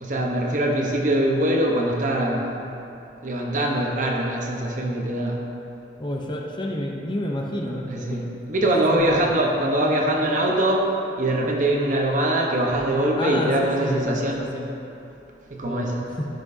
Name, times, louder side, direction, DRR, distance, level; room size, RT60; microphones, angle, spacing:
voice 1, 0.0-2.5 3.2-5.4 7.9-10.9 11.2-14.4 15.5-16.1, right 1 dB, 45° right, 0 dB, 0.9 m, -23 dB
voice 2, 6.0-8.3 8.6-9.2 13.2-14.7 15.6-16.3, equal, 25° left, 0 dB, 0.7 m, -29 dB
13.5 x 6.2 x 2.7 m, 2.9 s
head